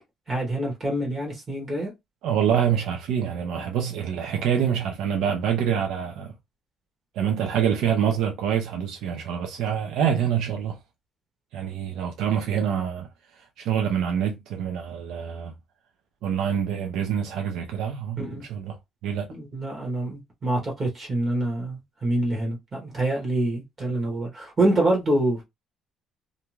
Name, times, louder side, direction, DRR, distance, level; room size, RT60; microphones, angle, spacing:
voice 1, 0.3-1.9 18.2-18.4 19.3-25.5, right 1 dB, 25° right, 1.1 m, -26 dB
voice 2, 2.2-6.3 7.1-10.8 11.5-13.1 13.4-15.5 16.2-18.8 19.0-19.3, right 8 dB, 75° right, 0.5 m, -26 dB
2.5 x 2.3 x 3.0 m
cardioid pair, 175°, 0 cm